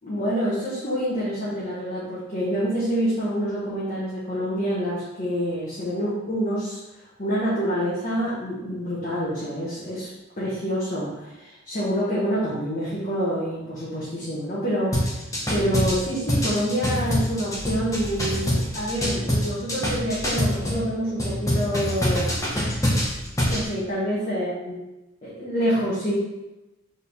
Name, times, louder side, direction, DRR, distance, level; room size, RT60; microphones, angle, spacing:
voice 1, 0.0-6.8 7.2-10.1 10.4-15.2 15.5-22.3 23.5-24.7 25.2-26.1, equal, 40° left, -9 dB, 1.5 m, -27 dB
sound 1, 14.9-20.8 21.2-23.6, equal, 15° left, 1.2 m, -24 dB
6.5 x 4.0 x 3.6 m, 1.0 s
head